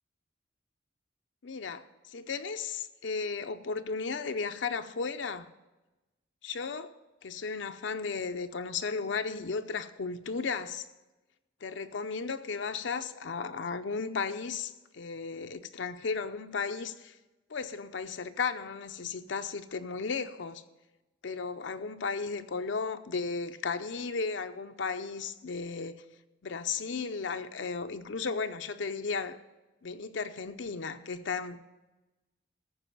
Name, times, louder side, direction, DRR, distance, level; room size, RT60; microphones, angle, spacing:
voice 1, 1.4-5.5 6.4-6.9 7.2-10.9 11.6-17.2 17.5-20.6 21.2-26.0 26.4-29.4 29.8-31.6, left 5 dB, 65° left, 0.6 m, -35 dB
14.5 x 4.8 x 8.5 m
head